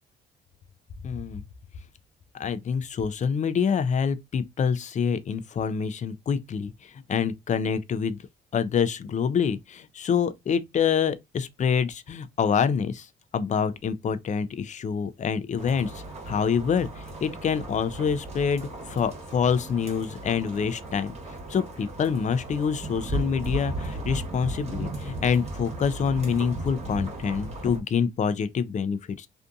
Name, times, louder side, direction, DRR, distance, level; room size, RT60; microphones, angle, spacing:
voice 1, 1.0-1.4 2.4-8.2 8.5-13.1 13.3-21.2 21.5-29.3, left 6 dB, 40° left, 0.4 m, -26 dB
sound 1, 15.6-27.8, right 2 dB, 35° right, 1.2 m, -36 dB
2.6 x 2.5 x 2.3 m
cardioid pair, 90°, 20 cm